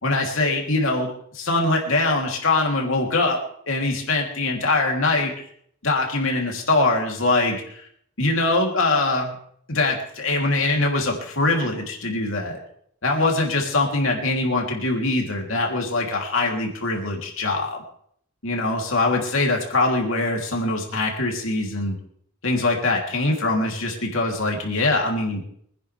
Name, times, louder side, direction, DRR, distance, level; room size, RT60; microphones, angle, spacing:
voice 1, 0.0-5.3 5.8-7.8 8.2-9.3 9.7-12.6 13.0-17.8 18.4-22.0 22.4-25.4, left 2 dB, 65° left, 0 dB, 3.3 m, -23 dB
24.5 x 10.5 x 3.5 m, 0.66 s
head